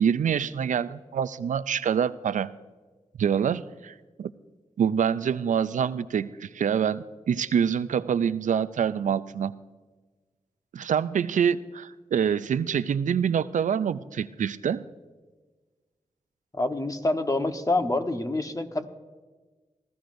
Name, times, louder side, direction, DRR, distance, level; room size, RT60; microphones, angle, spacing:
voice 1, 0.0-2.5 3.2-4.3 4.8-9.5 10.7-14.8, right 7 dB, 80° right, 15 dB, 0.4 m, -26 dB
voice 2, 16.5-18.9, left 2 dB, 25° left, 6 dB, 1.1 m, -26 dB
19.0 x 14.0 x 2.6 m, 1.3 s
cardioid pair, 50°, 13 cm